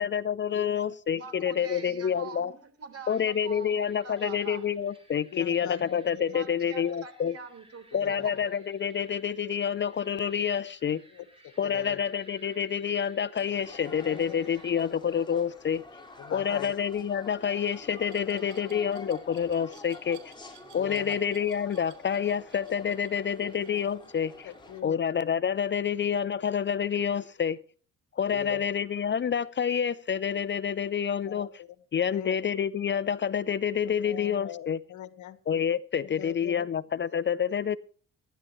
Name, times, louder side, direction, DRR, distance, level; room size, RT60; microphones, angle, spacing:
voice 1, 0.0-2.5 3.1-7.3 7.9-11.0 11.6-15.8 16.3-20.3 20.7-24.5 24.8-27.6 28.1-31.5 31.9-34.8 35.5-37.8, left 8 dB, 40° left, 16 dB, 0.6 m, -28 dB
voice 2, 0.5-1.0 5.3-6.5 8.0-8.3 11.1-12.0 14.0-14.4 14.7-14.8 16.2-16.7 18.2-18.8 20.7-21.2 22.8-23.2 23.4-23.5 24.4-25.0 28.3-28.6 31.3-32.4 33.9-35.4 36.0-36.7, left 11 dB, 75° left, 12 dB, 1.5 m, -41 dB
voice 3, 1.1-4.6 6.3-8.5, right 5 dB, 50° right, 7 dB, 4.0 m, -44 dB
sound 1, 3.1-14.7, right 1 dB, 20° right, 5.3 m, -59 dB
sound 2, 13.3-24.8, left 2 dB, 15° left, 4.8 m, -48 dB
Glass, 18.1-24.9, right 10 dB, 80° right, 3.4 m, -57 dB
24.5 x 11.5 x 3.1 m, 0.43 s
cardioid pair, 90°, 30 cm